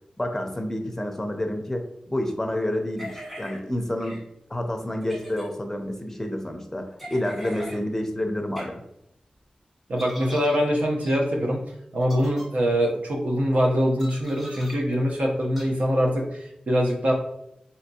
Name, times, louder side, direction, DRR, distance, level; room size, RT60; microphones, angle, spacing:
voice 1, 0.2-4.2 4.5-8.8, left 1 dB, 15° left, 4 dB, 0.5 m, -29 dB
sound 1, 3.0-3.6 4.0-4.2 5.0-5.5 7.0-7.8 8.6-8.7 10.0-10.6 11.0-11.2 12.0-12.5 14.0-14.8 15.6-15.7, equal, 10° right, 1.4 m, -40 dB
voice 2, 9.9-11.6 11.9-17.1, equal, 75° right, 0 dB, 0.7 m, -23 dB
3.4 x 2.8 x 2.7 m, 0.80 s
wide cardioid pair, 105°, 2 cm